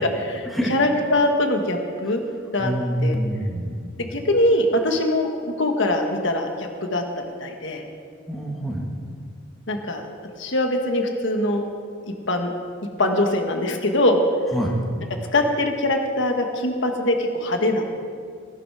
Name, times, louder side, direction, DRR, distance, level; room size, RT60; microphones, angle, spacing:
voice 1, 0.0-2.7 3.0-3.2 4.0-7.0 7.4-7.8 9.7-10.0 10.4-11.6 12.3-12.5 13.0-14.2 15.3-18.0, left 1 dB, 65° left, 4 dB, 1.6 m, -22 dB
voice 2, 2.6-3.9 8.3-8.8 14.5-14.8, equal, ahead, -3 dB, 1.9 m, -26 dB
18.0 x 11.5 x 5.0 m, 2.1 s
head